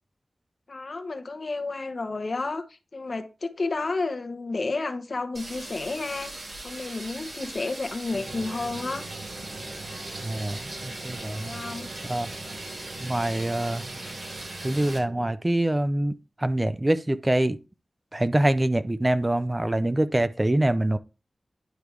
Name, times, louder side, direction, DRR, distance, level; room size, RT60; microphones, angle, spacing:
voice 1, 0.7-6.3 6.6-9.1 11.4-11.9, left 3 dB, 60° left, 1.0 m, -31 dB
sound 1, 5.3-15.0, right 2 dB, 60° right, 3.6 m, -39 dB
sound 2, 8.1-15.3, right 3 dB, 90° right, 1.3 m, -42 dB
voice 2, 10.2-11.5 12.1-12.3 13.0-13.8 14.6-17.6 18.1-21.0, right 1 dB, 20° right, 0.6 m, -25 dB
10.0 x 3.5 x 4.7 m
wide cardioid pair, 70°, 0 cm